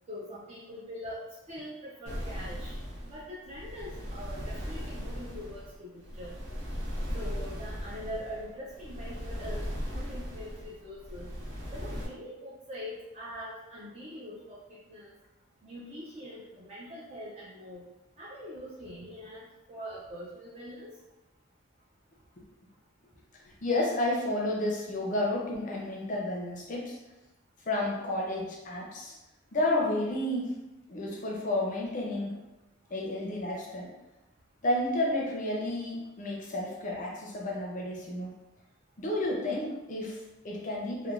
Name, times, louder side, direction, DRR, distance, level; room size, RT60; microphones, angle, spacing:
voice 1, 0.1-1.2 1.5-2.7 3.0-6.4 7.1-11.3 11.7-14.6 14.9-15.1 15.6-17.8 18.2-20.9, equal, 30° right, -7 dB, 0.4 m, -43 dB
sound 1, 2.1-12.1, equal, 75° right, 1.1 m, -38 dB
voice 2, 23.6-27.0 27.7-29.2 29.5-30.6 30.9-32.4 32.9-33.9 34.6-38.4 39.0-41.1, left 1 dB, 40° left, -2 dB, 0.5 m, -31 dB
3.1 x 2.1 x 2.4 m, 1.0 s
head